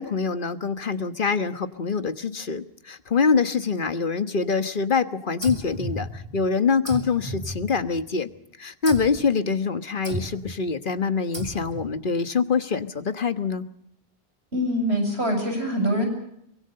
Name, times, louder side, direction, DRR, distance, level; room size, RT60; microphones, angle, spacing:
voice 1, 0.0-8.3 8.6-13.6, left 5 dB, 55° left, 10 dB, 1.5 m, -25 dB
sound 1, 5.4-6.5 6.9-8.2 8.9-9.3 10.0-10.6 11.3-12.0, right 1 dB, 30° right, 3.2 m, -34 dB
voice 2, 14.5-16.1, equal, 90° right, 3 dB, 8.0 m, -24 dB
24.0 x 22.5 x 6.7 m, 0.76 s
omnidirectional pair, 1.1 m